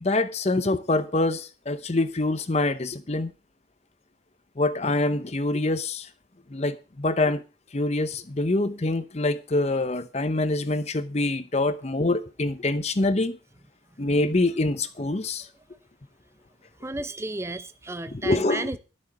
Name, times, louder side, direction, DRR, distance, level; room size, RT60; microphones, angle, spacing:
voice 1, 0.0-3.3 4.6-6.1 6.5-7.4 7.7-13.4 14.0-15.5 18.2-18.7, left 2 dB, 35° left, 0.7 m, -25 dB
voice 2, 16.8-18.8, right 2 dB, 15° right, 0.6 m, -33 dB
12.5 x 6.5 x 7.0 m
head